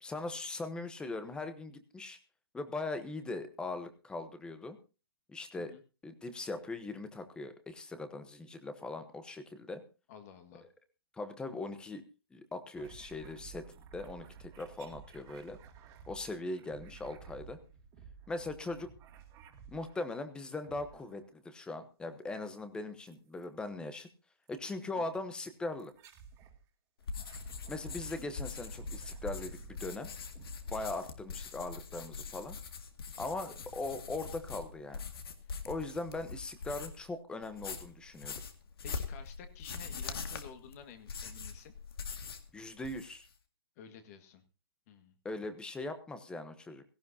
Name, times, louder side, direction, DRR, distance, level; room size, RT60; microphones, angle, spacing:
voice 1, 0.0-2.2 2.5-4.8 5.3-5.7 6.0-9.8 11.1-12.0 12.3-15.6 16.1-17.6 18.3-18.9 19.7-24.1 24.5-25.9 27.7-30.1 30.7-32.6 33.2-35.0 35.7-38.3 42.5-43.3 45.2-46.8, left 2 dB, 5° left, 10 dB, 1.0 m, -40 dB
voice 2, 10.1-10.7 25.0-25.1 35.4-35.6 38.8-41.7 43.8-44.4 44.9-45.1, left 7 dB, 35° left, 8 dB, 1.9 m, -52 dB
sound 1, 12.8-20.2 20.6-21.4 23.1-23.5 24.5-24.6 25.8-26.6 27.0-31.4, right 7 dB, 25° right, 2.2 m, -54 dB
sound 2, 27.0-37.1 37.4-42.5 42.8-43.3, left 5 dB, 65° left, 2.1 m, -43 dB
17.5 x 15.0 x 2.8 m, 0.32 s
hypercardioid pair, 150°, 13 cm